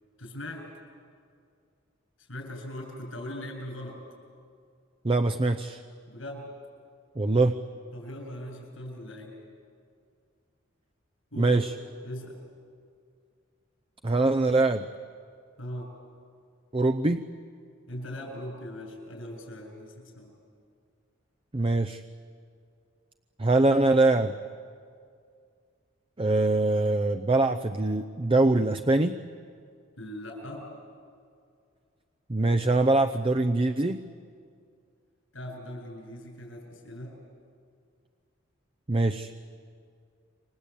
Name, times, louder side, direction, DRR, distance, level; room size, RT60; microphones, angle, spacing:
voice 1, 0.2-0.7 2.3-4.0 6.1-6.5 7.9-9.4 11.3-11.6 12.0-12.4 15.6-15.9 17.9-20.3 30.0-30.7 35.3-37.2, left 1 dB, 85° left, 2 dB, 7.6 m, -40 dB
voice 2, 5.0-5.8 7.2-7.6 11.4-11.7 14.0-14.9 16.7-17.2 21.5-22.0 23.4-24.4 26.2-29.2 32.3-34.0 38.9-39.3, right 2 dB, 25° right, 7 dB, 0.7 m, -23 dB
28.5 x 25.0 x 8.5 m, 2.3 s
head